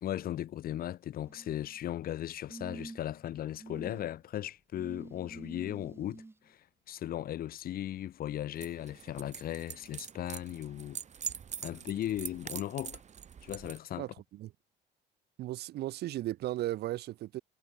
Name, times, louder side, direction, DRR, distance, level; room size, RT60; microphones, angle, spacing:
voice 1, 0.0-11.0 11.6-13.0 13.4-14.1, left 12 dB, 60° left, 1.8 m, -37 dB
sound 1, 1.2-1.8 2.5-3.2 3.6-4.0 4.7-6.3 7.6-7.7, right 2 dB, 15° right, 3.1 m, -47 dB
sound 2, 8.5-13.8, right 8 dB, 45° right, 5.0 m, -44 dB
voice 2, 14.0-14.5 15.4-17.4, right 15 dB, 75° right, 1.7 m, -36 dB
cardioid pair, 110°, 17 cm